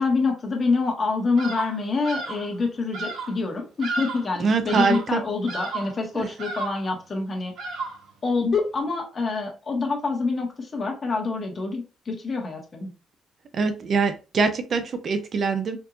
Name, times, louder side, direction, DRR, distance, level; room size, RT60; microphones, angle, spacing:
voice 1, 0.0-7.5 8.2-12.9, left 4 dB, 40° left, 2 dB, 1.3 m, -26 dB
Bird vocalization bird call bird song, 1.4-2.5 2.9-3.4 3.8-4.3 4.7-5.1 5.5-6.0 6.4-6.9 7.6-8.1, right 3 dB, 85° right, 1.1 m, -32 dB
voice 2, 4.4-5.2 6.1-6.3 13.5-15.8, right 4 dB, 55° right, 8 dB, 0.6 m, -23 dB
4.4 x 2.7 x 2.5 m, 0.31 s
cardioid pair, 90°, 0 cm